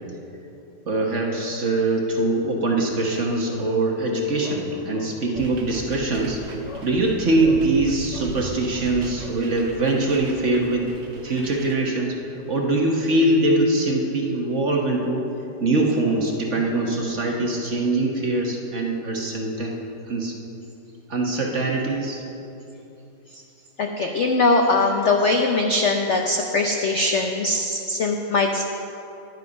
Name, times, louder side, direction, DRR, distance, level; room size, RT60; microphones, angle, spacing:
voice 1, 0.9-6.4 6.8-10.9 11.2-12.1 12.5-15.3 15.6-19.7 20.1-20.3 21.1-22.2, right 2 dB, 45° right, 0 dB, 1.2 m, -23 dB
sound 1, 5.3-11.7, right 2 dB, 75° right, 1.8 m, -38 dB
voice 2, 23.8-28.6, left 3 dB, 65° left, 2 dB, 0.7 m, -21 dB
11.0 x 10.5 x 5.3 m, 2.9 s
omnidirectional pair, 2.1 m